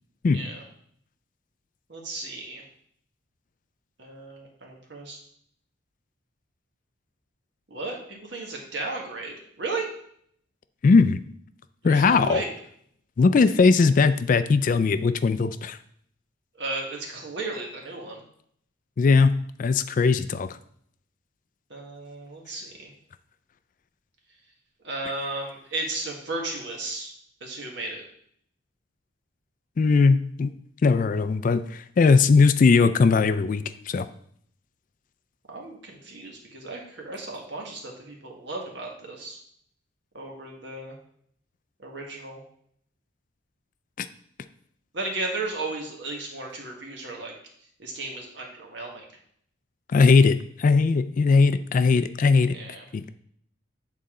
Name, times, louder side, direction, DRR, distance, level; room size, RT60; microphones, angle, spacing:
voice 1, 1.9-2.6 4.0-5.2 7.7-9.9 11.8-12.5 16.6-18.2 21.7-22.9 24.8-27.1 27.4-28.0 35.5-39.4 40.1-41.0 41.8-42.4 44.9-47.3 47.8-49.0 52.5-52.8, right 2 dB, 65° right, -1 dB, 1.6 m, -34 dB
voice 2, 10.8-11.2 11.8-12.4 13.2-15.8 19.0-19.3 19.6-20.5 29.8-30.5 30.8-34.1 44.0-44.1 49.9-52.6 52.9-53.0, left 4 dB, 45° left, 12 dB, 0.3 m, -19 dB
8.7 x 4.1 x 3.7 m, 0.66 s
head